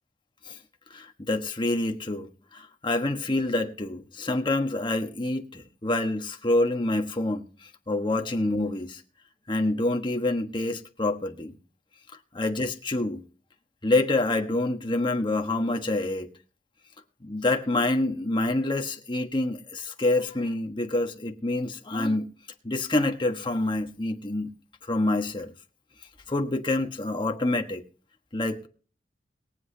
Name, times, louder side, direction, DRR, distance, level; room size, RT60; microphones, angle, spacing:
voice 1, 0.9-9.0 9.5-11.5 12.3-13.2 13.8-16.3 17.2-22.3 22.6-24.5 24.8-25.5 26.3-27.8 28.3-28.7, left 2 dB, 30° left, 1.3 m, -27 dB
22.0 x 8.0 x 2.8 m
head